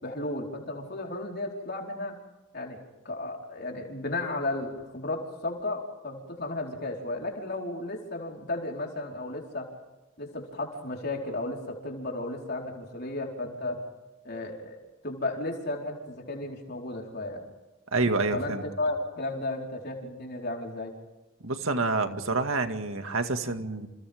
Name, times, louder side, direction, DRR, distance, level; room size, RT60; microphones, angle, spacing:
voice 1, 0.0-2.2 2.5-9.7 10.2-13.8 14.2-17.4 18.3-20.9, left 2 dB, 50° left, 0 dB, 4.7 m, -34 dB
voice 2, 17.9-18.6 21.4-23.9, right 3 dB, 75° right, 6 dB, 2.2 m, -28 dB
29.0 x 29.0 x 3.7 m, 1.1 s
head